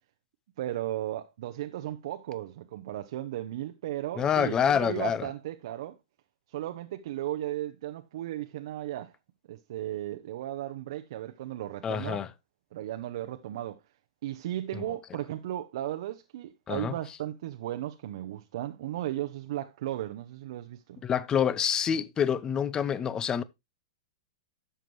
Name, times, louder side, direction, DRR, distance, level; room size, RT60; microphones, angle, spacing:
voice 1, 0.6-6.0 6.5-9.1 9.5-12.2 12.7-13.8 14.2-21.0, right 13 dB, 60° right, 0.8 m, -35 dB
voice 2, 4.1-5.3 11.8-12.3 14.7-14.9 16.7-16.9 21.0-23.4, left 8 dB, 25° left, 0.8 m, -27 dB
12.5 x 7.5 x 3.1 m
hypercardioid pair, 110°, 3 cm